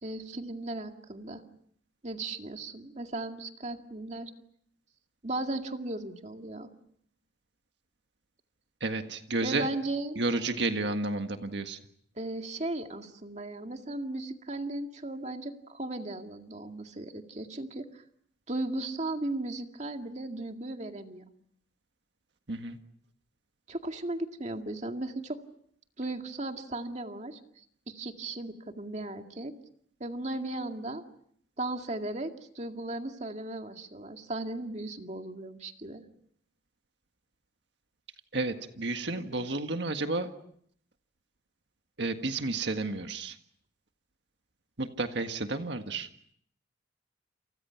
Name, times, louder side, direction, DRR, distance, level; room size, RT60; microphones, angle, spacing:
voice 1, 0.0-1.4 2.0-4.3 5.2-6.7 9.4-10.2 12.2-18.0 18.5-21.2 23.7-25.4 26.0-29.5 30.0-31.0 31.6-36.0, right 2 dB, 35° right, 5 dB, 2.1 m, -36 dB
voice 2, 8.8-9.7 10.2-11.8 22.5-22.8 38.3-40.3 42.0-43.4 44.8-46.1, right 2 dB, 65° right, 7 dB, 1.7 m, -31 dB
29.0 x 29.0 x 5.8 m, 0.66 s
head